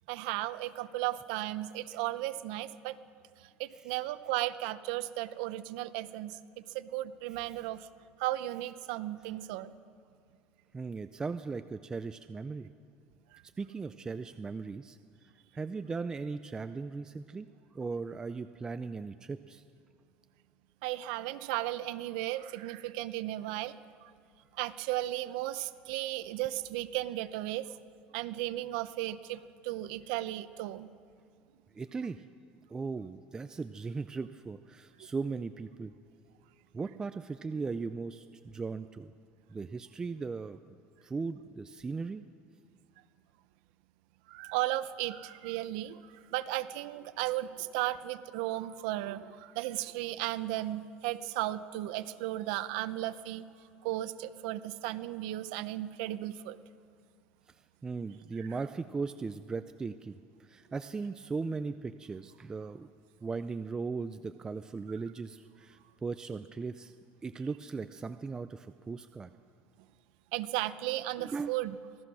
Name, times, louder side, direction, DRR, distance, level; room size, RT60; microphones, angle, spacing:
voice 1, 0.1-3.0 3.4-6.4 6.7-7.9 8.2-9.7 20.8-23.7 24.0-24.1 24.6-27.7 28.1-30.9 44.3-53.4 53.8-56.6 70.3-71.8, right 15 dB, 85° right, 13 dB, 0.9 m, -35 dB
voice 2, 10.7-12.7 13.6-15.0 15.5-17.5 17.7-19.6 31.7-32.2 32.7-35.9 36.7-39.1 39.5-40.6 41.0-42.2 57.8-62.9 63.2-66.9 67.2-69.3 71.2-71.6, right 4 dB, 15° right, 10 dB, 0.5 m, -38 dB
26.0 x 17.5 x 6.3 m, 2.4 s
cardioid pair, 150°, 4 cm